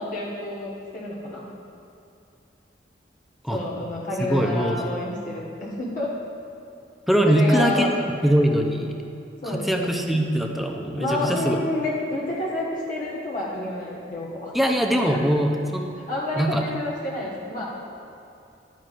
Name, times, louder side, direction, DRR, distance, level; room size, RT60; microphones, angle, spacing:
voice 1, 0.0-1.5 3.5-6.1 7.2-7.9 9.4-9.9 11.0-14.5 15.0-15.2 16.1-17.6, left 1 dB, 50° left, -6 dB, 1.4 m, -29 dB
voice 2, 4.2-4.8 7.1-8.9 9.5-11.6 14.5-15.9 16.4-16.6, equal, ahead, 2 dB, 0.6 m, -22 dB
11.5 x 9.1 x 2.5 m, 2.7 s
head